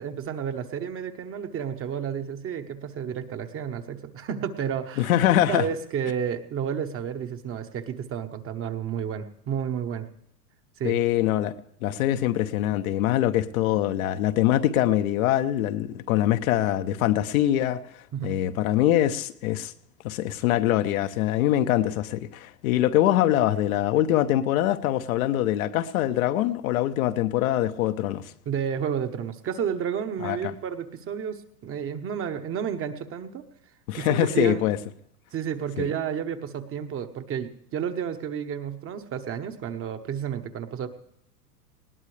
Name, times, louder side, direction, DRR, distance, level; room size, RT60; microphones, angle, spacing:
voice 1, 0.0-5.1 5.5-10.1 10.8-11.1 18.1-18.4 28.4-33.4 33.9-34.6 35.3-40.9, right 8 dB, 25° right, 1.1 m, -31 dB
voice 2, 5.0-5.7 10.8-11.5 11.8-17.8 18.2-19.7 20.0-28.3 30.2-30.5 33.9-34.8 35.8-35.9, left 13 dB, 60° left, 1.0 m, -23 dB
20.0 x 17.5 x 3.3 m
hypercardioid pair, 110°, 47 cm